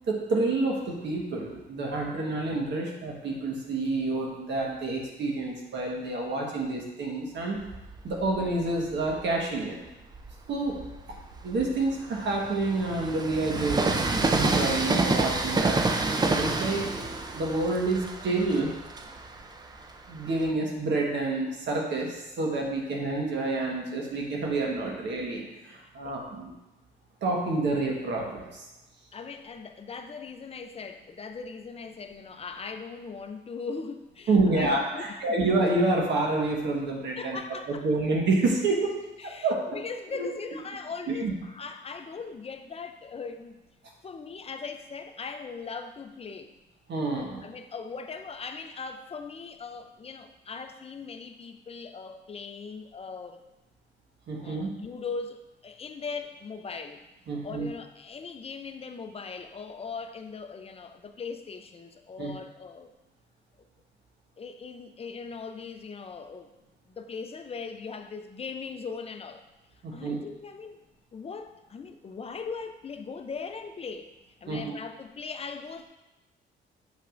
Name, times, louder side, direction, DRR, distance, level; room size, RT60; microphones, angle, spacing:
voice 1, 0.1-7.6 8.0-9.8 10.5-10.8 11.4-13.9 14.3-15.8 16.4-16.8 17.3-18.7 20.1-26.5 27.2-28.6 34.3-37.4 37.8-38.9 39.2-39.8 40.2-40.3 41.2-41.3 46.9-47.4 54.3-54.7 57.3-57.7 62.2-62.3 69.8-70.2 74.5-74.7, right 2 dB, 65° right, -1 dB, 1.4 m, -28 dB
Train, 7.6-9.3 9.9-20.5, right 3 dB, 20° right, 0.5 m, -29 dB
voice 2, 29.1-35.1 37.2-37.9 39.2-43.6 44.0-46.5 47.4-53.4 54.4-55.4 55.6-57.0 57.4-62.9 64.4-66.5 66.9-69.4 69.9-70.8 71.1-74.1 74.4-75.9, left 5 dB, 30° left, 7 dB, 0.5 m, -39 dB
7.1 x 5.4 x 2.6 m, 1.0 s
cardioid pair, 90°, 20 cm